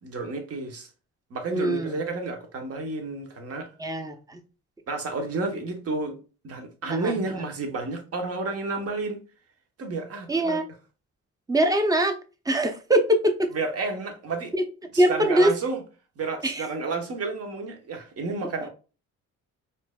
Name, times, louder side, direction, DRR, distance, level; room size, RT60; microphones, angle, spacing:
voice 1, 0.0-0.9 1.3-3.7 4.9-6.2 6.4-9.2 9.8-10.6 13.5-14.5 14.9-15.8 16.2-18.7, right 3 dB, 50° right, 1.0 m, -31 dB
voice 2, 1.5-2.0 3.8-4.4 6.9-7.1 10.3-10.6 11.5-12.2 12.5-13.5 14.5-14.6 15.0-15.5 16.4-16.7, right 1 dB, 10° right, 0.6 m, -22 dB
4.4 x 2.6 x 2.2 m
cardioid pair, 90°, 30 cm